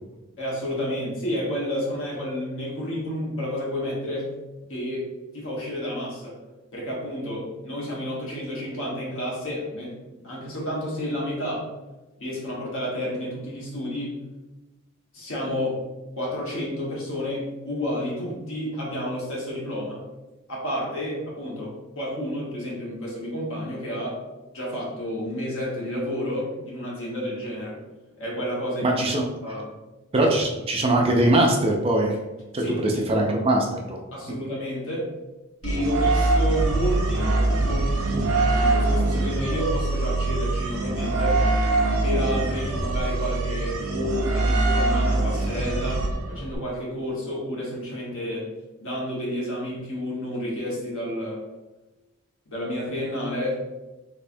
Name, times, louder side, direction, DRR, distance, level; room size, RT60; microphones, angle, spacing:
voice 1, 0.4-4.3 4.7-5.1 5.3-6.4 6.7-9.9 10.2-11.7 12.2-14.2 15.1-15.8 16.2-20.0 20.5-24.2 24.5-27.8 28.2-28.9 29.4-29.7 32.6-33.0 34.1-35.1 35.6-37.3 37.6-41.4 42.0-48.5 48.8-51.4 52.5-53.6, equal, 65° left, -5 dB, 1.3 m, -30 dB
voice 2, 28.8-29.2 30.1-32.1 32.5-34.0, right 1 dB, 25° right, 1 dB, 0.4 m, -21 dB
sound 1, 35.6-46.6, right 2 dB, 80° right, 0.7 m, -23 dB
3.4 x 3.3 x 2.6 m, 1.1 s
head